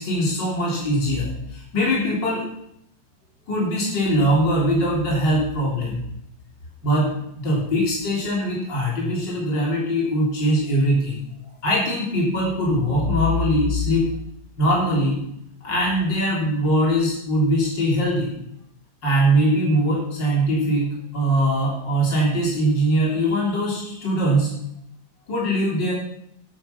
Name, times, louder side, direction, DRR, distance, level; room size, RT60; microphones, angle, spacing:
voice 1, 0.0-2.4 3.5-6.1 6.8-11.2 11.6-14.1 14.6-15.2 15.6-18.3 19.0-20.9 21.1-24.5 25.3-25.9, equal, 65° left, -4 dB, 4.1 m, -21 dB
11.0 x 10.5 x 5.8 m, 0.74 s
omnidirectional pair, 2.1 m